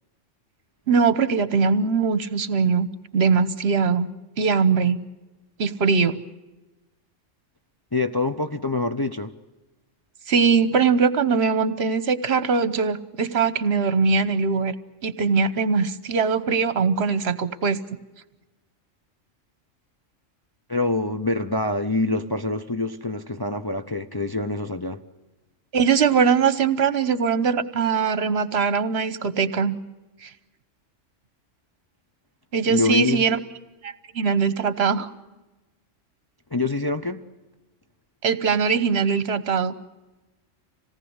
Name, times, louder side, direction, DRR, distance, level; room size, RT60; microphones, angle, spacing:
voice 1, 0.9-2.9 3.1-4.1 4.4-5.0 5.6-6.2 10.3-14.7 15.0-17.8 25.7-29.7 30.2-30.3 32.5-33.4 33.8-35.1 38.2-39.8, right 5 dB, 55° right, 1.3 m, -21 dB
voice 2, 7.9-9.4 20.7-25.0 32.7-33.2 36.5-37.3, left 2 dB, 25° left, 0.6 m, -25 dB
26.5 x 18.5 x 8.0 m
omnidirectional pair, 1.3 m